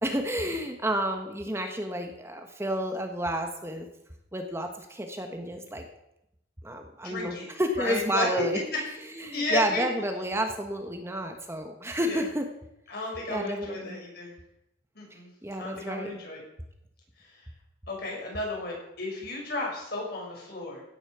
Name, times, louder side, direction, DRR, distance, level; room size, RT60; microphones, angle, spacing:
voice 1, 0.0-3.9 4.3-5.8 6.6-12.5 13.0-14.0 15.4-16.2, right 1 dB, 15° right, 4 dB, 1.3 m, -31 dB
voice 2, 7.0-7.5 7.8-8.3 9.3-9.8 12.0-12.2 12.9-14.3 14.9-15.3 15.6-16.4 17.9-20.8, left 2 dB, 55° left, -2 dB, 6.2 m, -33 dB
16.0 x 8.5 x 6.9 m, 0.84 s
head